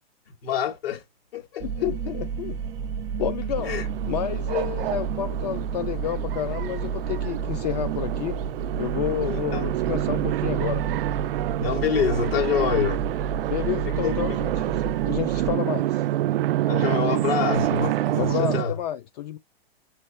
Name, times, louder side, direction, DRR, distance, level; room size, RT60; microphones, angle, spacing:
voice 1, 0.4-1.0 1.3-1.9 3.6-3.9 9.2-9.6 11.6-13.0 14.0-14.1 16.7-18.8, left 7 dB, 70° left, 2.9 m, -26 dB
voice 2, 1.6-2.6 3.2-3.7 4.1-8.4 8.8-10.8 13.5-16.1 18.2-19.4, left 12 dB, 40° left, 0.5 m, -30 dB
sound 1, 1.6-15.6, right 6 dB, 15° right, 0.5 m, -31 dB
sound 2, 3.6-18.6, right 15 dB, 65° right, 0.4 m, -28 dB
7.7 x 4.2 x 3.2 m
supercardioid pair, 165°, 31 cm